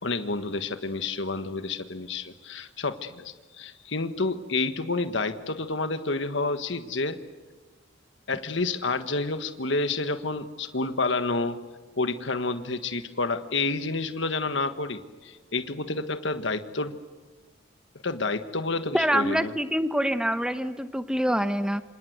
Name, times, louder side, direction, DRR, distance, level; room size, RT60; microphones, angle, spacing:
voice 1, 0.0-7.2 8.3-11.6 12.0-17.0 18.0-19.5, left 3 dB, 70° left, 9 dB, 1.5 m, -29 dB
voice 2, 18.9-21.8, equal, 5° right, 10 dB, 0.9 m, -25 dB
27.5 x 27.0 x 8.1 m, 1.2 s
head